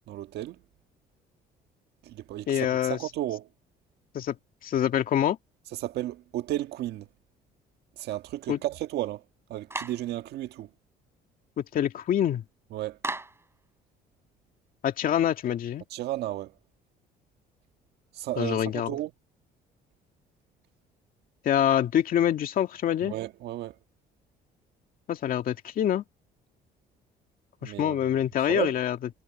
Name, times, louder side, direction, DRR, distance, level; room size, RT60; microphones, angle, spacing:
voice 1, 0.1-0.6 2.0-3.5 5.7-7.1 8.0-9.2 9.5-10.7 12.7-13.0 15.9-16.5 18.1-19.1 23.0-23.7 27.6-28.0 28.5-28.8, right 14 dB, 75° right, 1.6 m, -33 dB
voice 2, 2.5-3.0 4.1-4.4 4.6-5.4 8.5-8.6 11.6-12.4 14.8-15.8 18.4-18.9 21.4-23.1 25.1-26.0 27.6-29.0, left 10 dB, 55° left, 2.4 m, -25 dB
Clapping, 9.7-10.1 13.0-13.5, right 2 dB, 15° right, 5.3 m, -34 dB
cardioid pair, 110°, 17 cm